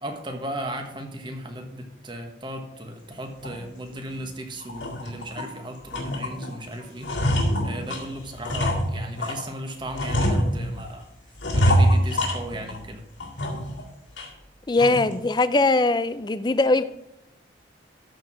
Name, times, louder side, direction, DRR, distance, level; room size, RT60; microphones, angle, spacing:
voice 1, 0.0-7.1 7.6-11.1 11.5-13.0, right 1 dB, 25° right, 4 dB, 1.2 m, -36 dB
sound 1, 3.4-3.6 4.1-4.2 4.6-5.5 5.9-6.5 6.8-9.5 9.9-10.9 11.4-12.9 13.2-13.8 14.2-14.3 14.8-15.1, equal, 80° left, 2.1 m, -24 dB
voice 2, 14.7-16.8, left 2 dB, 25° left, 13 dB, 0.4 m, -21 dB
13.0 x 4.6 x 5.9 m, 0.86 s
head